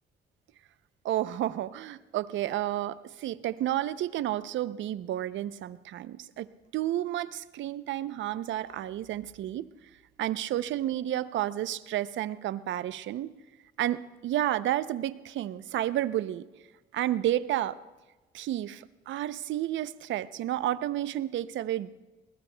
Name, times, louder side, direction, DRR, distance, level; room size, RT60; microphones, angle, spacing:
voice 1, 1.0-6.5 6.7-9.7 10.2-13.3 13.8-16.5 16.9-17.8 18.3-21.9, right 13 dB, 75° right, 16 dB, 0.5 m, -31 dB
21.5 x 19.0 x 2.2 m, 1.2 s
cardioid pair, 90°, 20 cm